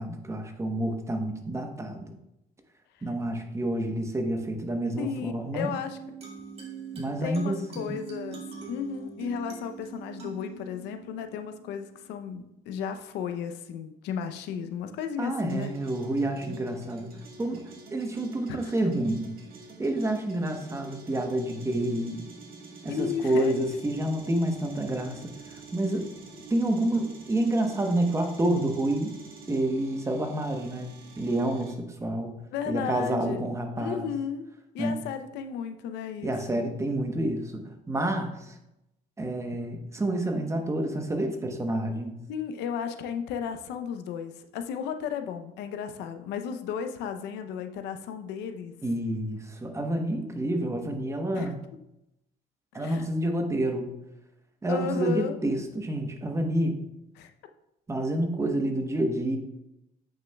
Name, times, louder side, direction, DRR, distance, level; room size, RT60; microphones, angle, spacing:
voice 1, 0.0-2.1 3.0-5.7 6.9-8.0 15.2-19.3 19.8-22.3 22.8-26.1 26.5-29.1 29.5-32.3 32.7-34.1 34.8-35.0 36.2-38.6 39.2-42.2 48.8-51.6 52.7-53.9 54.6-56.8 57.9-59.4, right 1 dB, 15° right, 4 dB, 0.9 m, -29 dB
voice 2, 5.0-6.0 7.2-15.7 18.5-18.7 22.9-23.6 32.5-34.5 34.7-36.6 42.3-48.7 51.3-51.5 52.7-53.0 54.7-55.4 57.2-57.3, left 7 dB, 85° left, 8 dB, 0.6 m, -34 dB
sound 1, 5.6-12.6, right 5 dB, 35° right, 1.9 m, -43 dB
sound 2, 15.5-31.8, right 3 dB, 60° right, 1.6 m, -47 dB
8.4 x 6.3 x 2.3 m, 0.88 s
cardioid pair, 110°, 17 cm